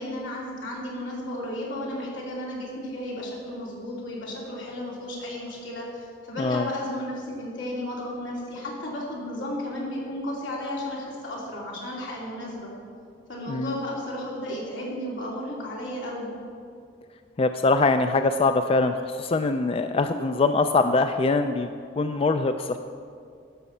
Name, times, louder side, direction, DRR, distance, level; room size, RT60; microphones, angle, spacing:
voice 1, 0.0-12.7 13.3-16.3, left 1 dB, 85° left, -4 dB, 3.0 m, -33 dB
voice 2, 13.5-13.8 17.4-21.7 22.0-22.8, left 3 dB, 30° left, 8 dB, 0.3 m, -23 dB
12.5 x 5.4 x 7.2 m, 2.3 s
head